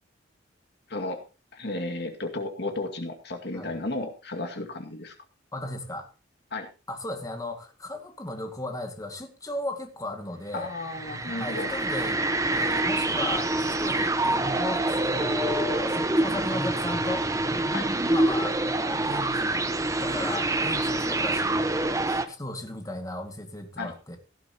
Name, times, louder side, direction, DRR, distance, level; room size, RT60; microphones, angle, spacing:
voice 1, 0.9-1.2 1.5-5.1 6.5-6.7 10.5-11.7 17.7-17.9 23.8-23.9, left 2 dB, 60° left, 2.2 m, -33 dB
voice 2, 3.5-3.9 5.5-6.1 6.9-10.7 11.4-12.2 12.5-17.3 18.1-19.7 20.0-21.8 22.1-24.2, left 2 dB, 20° left, 2.1 m, -35 dB
sound 1, 10.6-22.3, right 2 dB, 15° right, 1.0 m, -26 dB
17.5 x 11.5 x 3.0 m
head